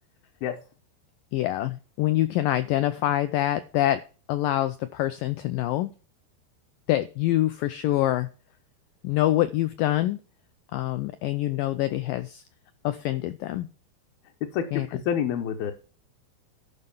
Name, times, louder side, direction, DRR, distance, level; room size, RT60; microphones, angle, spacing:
voice 1, 1.3-4.0 4.3-5.9 6.9-8.3 9.0-10.2 10.7-12.4 12.8-13.7 14.7-14.9, left 14 dB, 85° left, 12 dB, 1.9 m, -25 dB
voice 2, 14.5-15.7, left 8 dB, 70° left, 4 dB, 2.7 m, -28 dB
12.0 x 5.5 x 7.1 m, 0.36 s
omnidirectional pair, 4.7 m